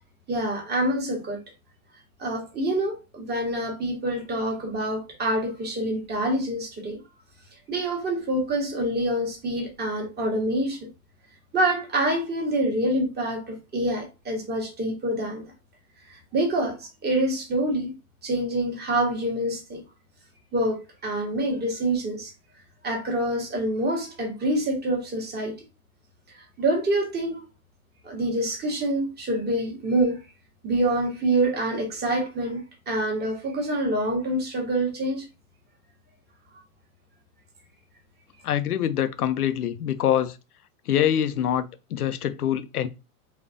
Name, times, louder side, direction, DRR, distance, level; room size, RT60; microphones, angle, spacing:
voice 1, 0.3-1.4 2.2-7.0 7.7-10.9 11.5-15.4 16.3-17.9 18.2-19.8 20.5-22.3 22.8-25.5 26.6-27.4 28.0-30.2 30.6-35.2, right 1 dB, 20° right, 1.3 m, -26 dB
voice 2, 38.4-40.4 40.9-42.9, left 10 dB, 90° left, 0.6 m, -25 dB
4.1 x 2.4 x 2.5 m
hypercardioid pair, 105°, 44 cm